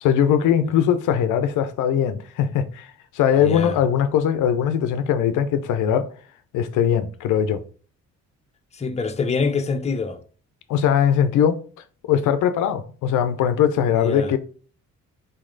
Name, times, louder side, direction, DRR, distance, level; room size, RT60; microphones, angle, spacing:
voice 1, 0.0-6.1 6.5-7.6 10.7-11.6 12.1-14.4, left 9 dB, 80° left, 0.6 m, -20 dB
voice 2, 3.4-3.8 8.7-10.2 13.9-14.3, left 4 dB, 20° left, 0.6 m, -25 dB
4.0 x 3.2 x 3.8 m
cardioid pair, 90°, 30 cm